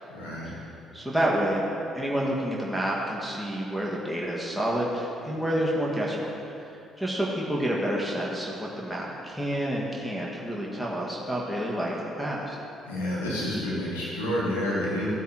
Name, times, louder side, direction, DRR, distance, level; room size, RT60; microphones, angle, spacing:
voice 1, 0.1-0.5 12.9-15.1, left 1 dB, 85° left, -7 dB, 1.7 m, -29 dB
voice 2, 0.9-1.7 1.9-6.3 6.6-12.6, right 1 dB, ahead, -5 dB, 1.9 m, -29 dB
15.0 x 9.1 x 3.1 m, 2.9 s
hypercardioid pair, 50°, 0 cm